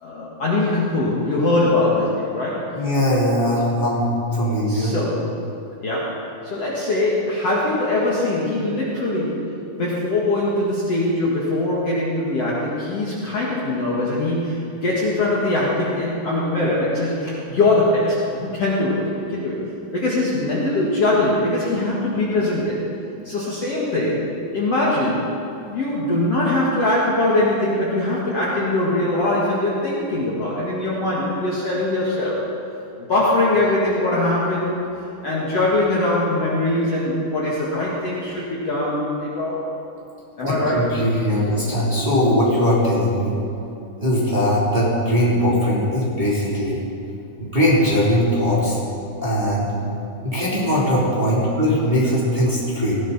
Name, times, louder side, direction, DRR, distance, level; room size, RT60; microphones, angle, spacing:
voice 1, 0.0-2.7 4.7-5.3 5.8-9.5 9.8-19.0 19.3-19.6 19.9-22.8 23.2-25.3 25.7-32.4 33.1-34.8 35.2-39.6 40.4-41.0, left 2 dB, 50° left, -6 dB, 2.4 m, -22 dB
voice 2, 2.7-4.9 40.4-43.4 44.0-46.8 47.4-48.8 49.2-49.7 50.2-52.9, equal, 10° right, -7 dB, 2.9 m, -20 dB
18.5 x 15.5 x 4.2 m, 2.9 s
omnidirectional pair, 4.5 m